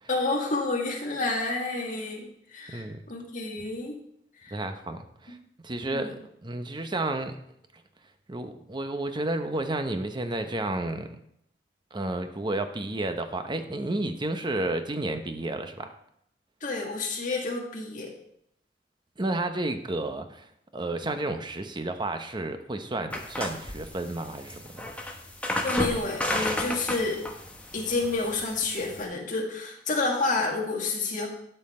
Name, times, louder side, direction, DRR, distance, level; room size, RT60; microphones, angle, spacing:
voice 1, 0.1-3.9 4.4-4.6 5.9-6.1 16.6-18.1 25.6-27.2 27.7-31.3, left 3 dB, 50° left, -1 dB, 2.0 m, -29 dB
voice 2, 2.7-3.0 4.5-5.4 5.6-6.2 6.4-7.4 8.3-11.2 11.9-15.9 19.2-20.5 20.7-24.9, right 2 dB, 25° right, 7 dB, 0.8 m, -31 dB
sound 1, 23.1-29.1, left 1 dB, 10° left, 1.1 m, -33 dB
11.5 x 5.6 x 4.3 m, 0.73 s
head